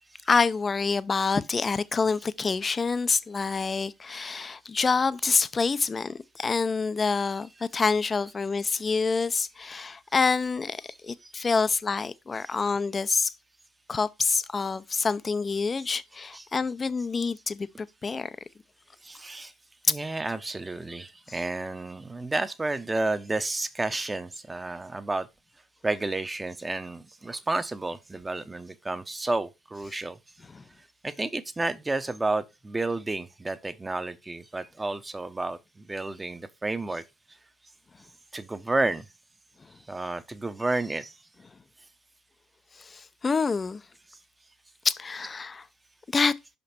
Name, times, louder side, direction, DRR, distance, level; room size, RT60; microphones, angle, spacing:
voice 1, 0.3-13.3 13.9-18.3 19.8-20.0 21.3-21.4 30.5-30.6 42.8-43.8 44.8-45.7 46.1-46.3, left 4 dB, 30° left, 0.5 m, -27 dB
voice 2, 11.1-11.7 12.3-12.6 15.8-15.9 16.3-16.5 19.0-19.5 19.9-25.3 25.8-30.2 31.0-37.0 38.3-39.1 39.9-41.2, right 2 dB, 20° right, 0.9 m, -31 dB
5.7 x 5.3 x 4.3 m
supercardioid pair, 70°, 0 cm